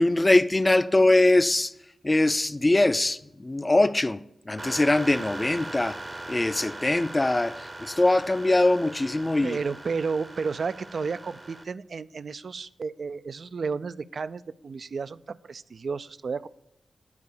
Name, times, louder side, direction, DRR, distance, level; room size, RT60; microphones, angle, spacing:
voice 1, 0.0-1.7 2.0-6.0 6.3-9.6, left 2 dB, 25° left, 0.4 m, -22 dB
sound 1, 4.6-11.6, right 2 dB, 30° right, 0.7 m, -40 dB
voice 2, 9.4-16.5, right 5 dB, 65° right, 0.3 m, -32 dB
9.6 x 4.5 x 6.7 m
cardioid pair, 55°, 0 cm